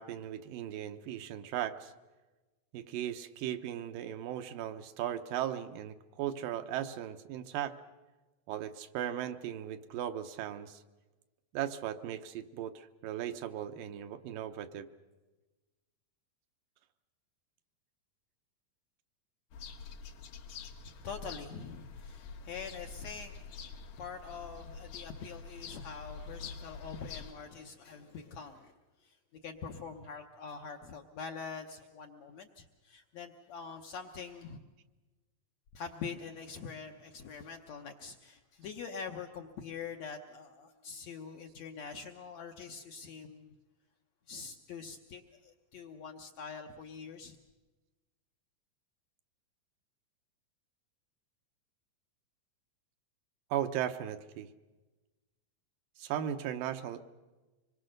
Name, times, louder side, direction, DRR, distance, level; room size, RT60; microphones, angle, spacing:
voice 1, 0.0-1.9 2.7-7.8 8.5-10.8 11.5-14.9 53.5-54.5 56.0-57.0, right 11 dB, 75° right, 8 dB, 2.4 m, -37 dB
sound 1, 19.5-27.3, left 5 dB, 85° left, 3.5 m, -46 dB
voice 2, 20.8-28.7 29.0-34.6 35.7-43.5 44.3-47.4, left 5 dB, 65° left, 3 dB, 1.8 m, -45 dB
25.5 x 22.0 x 6.5 m, 1.2 s
omnidirectional pair, 4.1 m